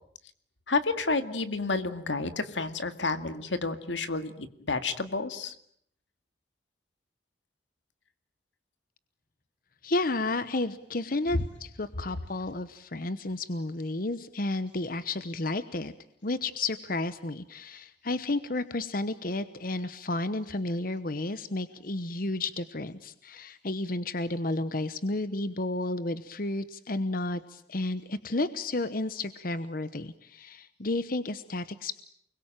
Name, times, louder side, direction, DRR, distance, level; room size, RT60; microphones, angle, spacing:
voice 1, 0.7-5.5 11.3-11.4, left 3 dB, 85° left, 10 dB, 2.2 m, -30 dB
voice 2, 9.8-15.9 16.2-32.0, left 2 dB, 50° left, 13 dB, 1.1 m, -32 dB
29.5 x 22.0 x 9.0 m, 0.69 s
head